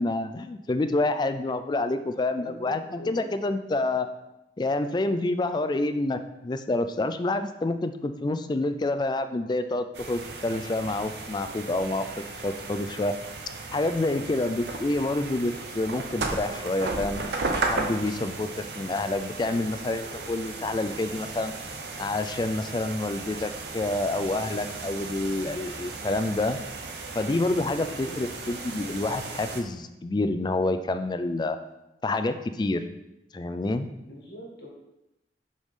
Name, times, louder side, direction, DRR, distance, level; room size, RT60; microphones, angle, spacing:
voice 1, 0.0-4.1 4.6-12.1 12.4-13.1 13.7-17.3 17.7-21.5 22.0-26.6 27.2-31.6 32.0-32.8 33.3-33.9, left 2 dB, 25° left, 9 dB, 0.3 m, -28 dB
voice 2, 2.3-3.3 27.8-28.2 34.0-34.7, equal, 65° left, -2 dB, 1.7 m, -43 dB
sound 1, 9.9-29.6, right 3 dB, 65° right, 0.8 m, -35 dB
6.3 x 4.9 x 3.7 m, 0.92 s
head